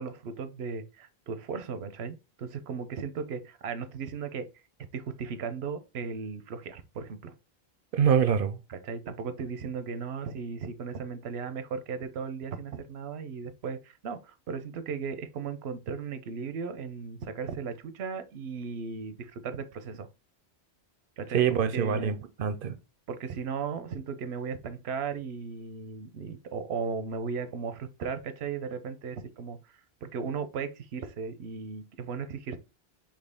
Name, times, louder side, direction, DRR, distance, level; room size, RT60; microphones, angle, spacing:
voice 1, 0.0-4.5 4.9-7.3 8.7-20.1 21.2-22.1 23.1-32.6, right 5 dB, 90° right, 0.9 m, -36 dB
voice 2, 7.9-8.6 21.3-22.8, right 8 dB, 65° right, 0.7 m, -25 dB
4.2 x 3.0 x 3.4 m
omnidirectional pair, 1.1 m